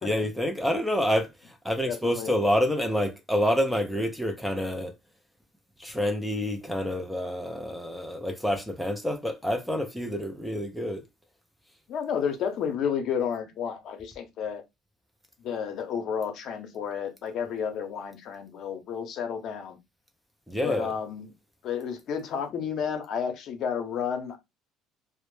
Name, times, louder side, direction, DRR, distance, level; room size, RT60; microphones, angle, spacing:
voice 1, 0.0-4.9 5.8-11.0 20.5-20.9, equal, ahead, 0.4 m, -28 dB
voice 2, 1.8-2.3 11.9-14.6 15.4-19.8 20.6-21.3 21.6-24.4, left 7 dB, 55° left, 0.6 m, -31 dB
2.0 x 2.0 x 3.0 m
cardioid pair, 120°, 0 cm